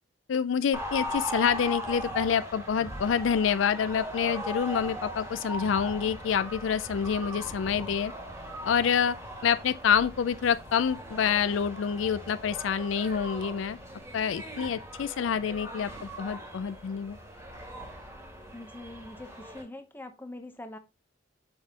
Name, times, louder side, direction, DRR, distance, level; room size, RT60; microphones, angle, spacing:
voice 1, 0.3-8.1 8.7-13.8 14.1-17.2, left 7 dB, 75° left, 0.4 m, -27 dB
sound 1, 0.7-19.6, equal, 15° right, 1.7 m, -39 dB
voice 2, 18.5-20.8, left 1 dB, 10° left, 0.8 m, -43 dB
7.0 x 5.5 x 2.8 m
head